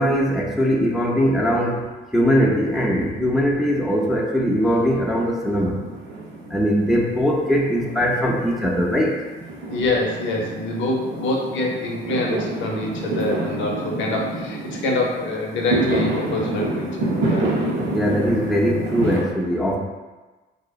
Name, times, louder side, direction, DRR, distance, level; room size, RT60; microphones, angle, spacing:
voice 1, 0.0-5.8 6.5-9.2 17.9-19.8, equal, ahead, -2 dB, 0.3 m, -21 dB
Fireworks, 2.7-3.7 3.9-19.2, right 2 dB, 80° right, 0.6 m, -28 dB
voice 2, 9.7-17.5, left 2 dB, 70° left, 0 dB, 0.5 m, -25 dB
2.6 x 2.1 x 2.3 m, 1.2 s
cardioid pair, 90°, 20 cm